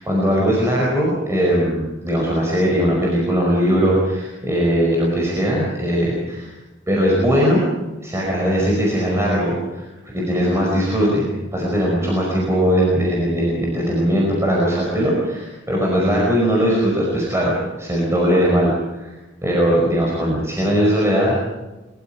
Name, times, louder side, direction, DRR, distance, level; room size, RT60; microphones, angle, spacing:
voice 1, 0.0-6.5 6.9-7.6 8.0-19.1 19.4-21.4, equal, 15° right, -3 dB, 5.2 m, -19 dB
23.0 x 23.0 x 5.7 m, 1.1 s
head